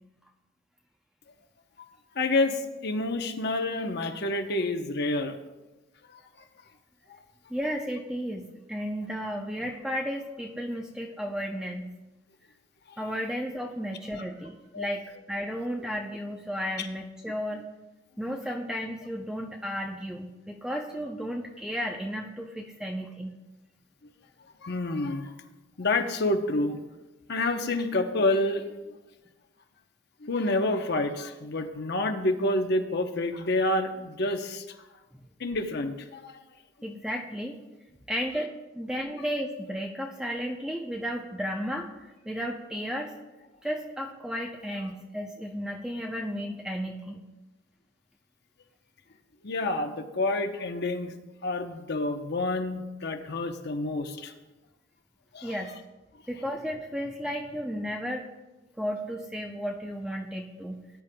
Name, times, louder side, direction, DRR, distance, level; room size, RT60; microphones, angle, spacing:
voice 1, 2.1-5.4 6.1-6.2 7.1-7.2 12.9-13.0 14.7-14.9 16.8-16.9 24.6-25.3 25.8-26.8 27.3-29.0 30.2-34.6 35.4-36.4 49.4-51.1 51.4-54.3 55.3-55.5, left 2 dB, 55° left, 6 dB, 0.9 m, -28 dB
voice 2, 7.5-12.0 13.0-17.7 18.2-23.3 35.1-35.3 36.8-37.6 38.1-43.1 43.6-47.2 55.4-55.7 56.3-58.3 58.8-60.8, equal, 5° right, 0 dB, 0.6 m, -33 dB
19.0 x 10.5 x 2.3 m, 1.1 s
head